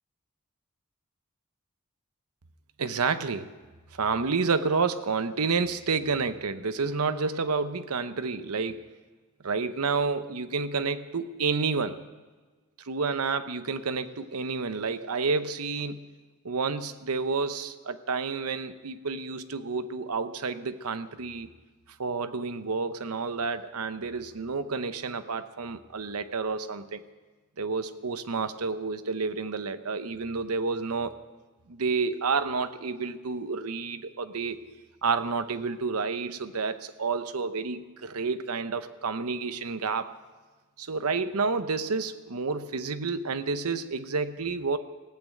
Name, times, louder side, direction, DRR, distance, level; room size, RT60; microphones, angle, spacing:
voice 1, 2.8-3.5 3.9-8.9 9.4-12.0 12.8-16.0 16.4-21.5 22.0-27.0 27.6-31.1 31.7-34.6 35.0-40.1 40.8-44.8, right 4 dB, 85° right, 11 dB, 0.8 m, -30 dB
16.5 x 8.8 x 9.0 m, 1.3 s
head